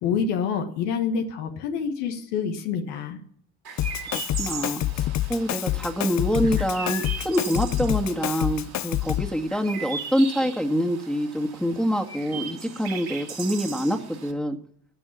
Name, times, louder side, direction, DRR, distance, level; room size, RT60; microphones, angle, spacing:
voice 1, 0.0-3.2, left 6 dB, 85° left, 5 dB, 1.4 m, -27 dB
Chirp tweet, 3.6-14.3, right 5 dB, 50° right, 3.3 m, -38 dB
Drum kit, 3.8-9.4, left 14 dB, 40° left, 0.4 m, -27 dB
voice 2, 4.1-14.6, equal, ahead, 2 dB, 2.0 m, -26 dB
13.0 x 8.6 x 7.0 m, 0.64 s
hypercardioid pair, 45°, 47 cm